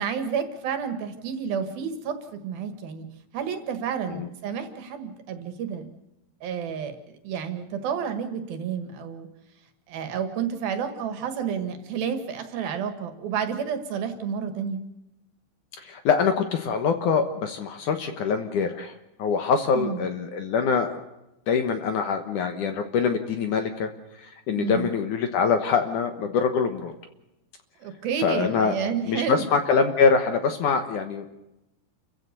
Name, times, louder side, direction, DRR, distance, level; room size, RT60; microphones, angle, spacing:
voice 1, 0.0-2.2 2.4-3.1 3.3-5.9 6.4-7.0 7.2-9.3 9.9-14.8 19.7-20.1 24.6-24.9 27.8-29.4, right 7 dB, 70° right, 8 dB, 3.5 m, -30 dB
voice 2, 15.8-18.9 19.2-21.0 21.5-23.9 24.2-26.9 28.2-31.3, left 5 dB, 60° left, 7 dB, 2.3 m, -24 dB
29.5 x 15.0 x 6.8 m, 0.93 s
omnidirectional pair, 4.7 m